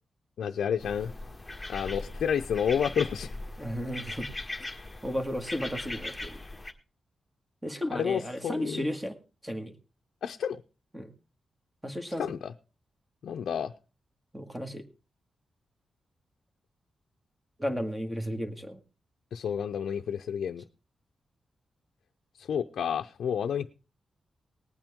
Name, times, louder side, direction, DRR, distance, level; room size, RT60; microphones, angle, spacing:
voice 1, 0.4-1.1 1.7-3.3 7.9-8.9 10.2-10.6 12.2-12.5 13.2-13.7 19.3-20.6 22.4-23.7, left 8 dB, 85° left, 5 dB, 0.6 m, -30 dB
sound 1, 0.8-6.7, left 2 dB, 10° left, 1.6 m, -39 dB
voice 2, 3.6-4.3 5.0-6.4 7.6-9.2 9.4-9.7 10.9-11.1 11.8-12.3 14.3-14.8 17.6-18.8, equal, 10° right, 6 dB, 1.8 m, -34 dB
19.5 x 9.0 x 3.6 m, 0.32 s
wide cardioid pair, 110°, 0 cm